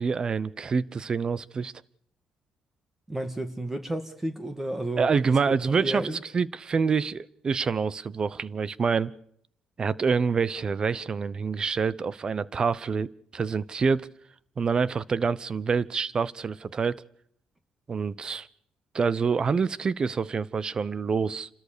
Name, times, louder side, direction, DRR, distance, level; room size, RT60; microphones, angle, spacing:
voice 1, 0.0-1.7 5.0-9.1 9.8-14.1 14.6-17.0 17.9-18.5 18.9-21.5, right 5 dB, 35° right, 21 dB, 0.8 m, -26 dB
voice 2, 3.1-5.4 5.8-6.2, right 1 dB, 15° right, 9 dB, 1.9 m, -32 dB
28.5 x 13.5 x 6.8 m, 0.68 s
cardioid pair, 100°, 2 cm